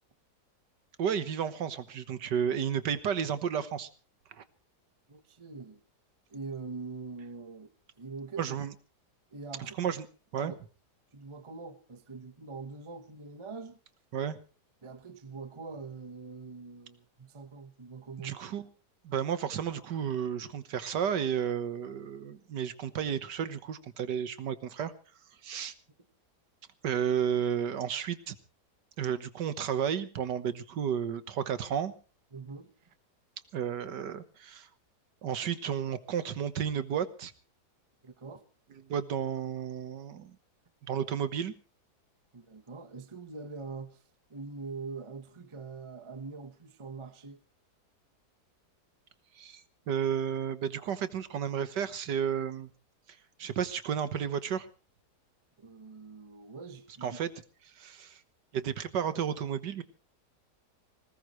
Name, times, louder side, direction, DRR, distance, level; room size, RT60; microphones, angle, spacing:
voice 1, 1.0-3.9 4.3-4.4 8.4-8.7 9.8-10.1 10.3-10.5 14.1-14.4 18.2-18.7 19.0-24.9 25.4-25.7 26.8-28.4 29.0-31.9 33.5-34.7 35.2-37.3 38.9-40.4 40.9-41.5 49.4-52.7 53.4-54.7 57.0-57.3 57.8-58.2 58.5-59.8, right 8 dB, 90° right, 1.8 m, -32 dB
voice 2, 5.1-5.8 6.3-8.4 9.3-9.7 10.4-10.6 11.1-13.8 14.8-18.4 32.3-32.9 38.0-38.4 42.3-44.0 44.3-47.4 55.6-57.2, right 4 dB, 20° right, 1.0 m, -43 dB
21.0 x 18.5 x 3.2 m
omnidirectional pair, 1.8 m